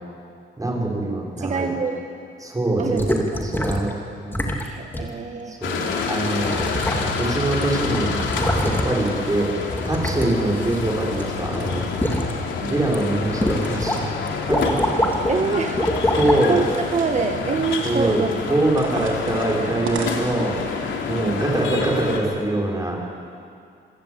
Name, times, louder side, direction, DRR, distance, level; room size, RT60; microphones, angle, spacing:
voice 1, 0.6-1.7 2.4-3.9 4.2-4.4 5.5-6.6 7.1-8.1 8.6-9.5 9.9-11.9 12.7-14.0 14.5-14.8 15.3-15.5 16.2-16.6 17.8-18.2 18.5-20.6 21.0-23.0, right 1 dB, 15° right, -2 dB, 6.5 m, -23 dB
voice 2, 1.4-2.0 2.8-3.0 3.3-3.4 4.6-5.6 12.6-12.9 15.3-18.3 21.1-21.4, right 5 dB, 35° right, 3 dB, 1.7 m, -26 dB
sound 1, 3.0-3.9 4.3-4.7 4.9-5.1 6.0-6.1 6.4-7.4 7.6-9.1 9.7-11.2 11.5-12.3 12.8-13.0 13.4-14.0 14.3-15.4 15.8-16.4 17.1-17.2, equal, 10° left, 2.8 m, -24 dB
sound 2, 5.6-22.2, left 5 dB, 75° left, 3.3 m, -28 dB
sound 3, 13.5-14.1 14.6-15.8 16.4-17.3 17.6-18.2 18.8-20.5, right 5 dB, 80° right, 3.3 m, -37 dB
26.0 x 17.0 x 8.7 m, 2.4 s
cardioid pair, 90°, 20 cm